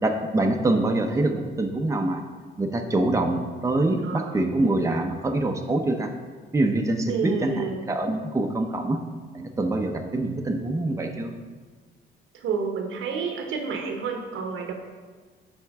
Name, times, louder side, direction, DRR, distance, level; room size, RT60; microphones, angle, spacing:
voice 1, 0.0-2.2 2.6-6.1 6.5-9.0 9.3-11.3, right 2 dB, 15° right, 3 dB, 0.7 m, -25 dB
voice 2, 4.0-4.4 7.1-7.8 12.3-14.7, right 5 dB, 80° right, 4 dB, 1.0 m, -29 dB
10.5 x 4.4 x 3.5 m, 1.5 s
cardioid pair, 90°, 20 cm